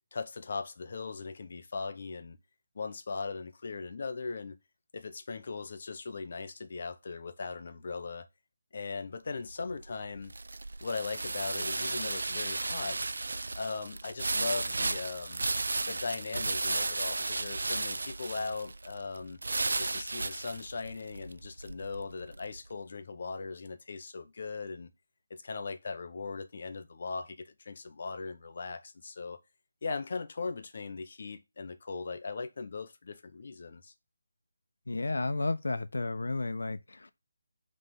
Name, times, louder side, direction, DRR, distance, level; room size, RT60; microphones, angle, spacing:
voice 1, 0.1-2.4 2.7-4.6 4.9-8.3 8.7-10.3 10.8-13.0 13.5-15.5 15.9-19.4 19.8-24.9 25.3-29.4 29.8-33.9, left 4 dB, 35° left, 0.7 m, -39 dB
sound 1, 9.3-22.6, right 3 dB, 70° right, 0.4 m, -34 dB
voice 2, 34.9-37.1, left 2 dB, 90° left, 0.7 m, -32 dB
5.6 x 3.3 x 5.6 m
hypercardioid pair, 180°, 0 cm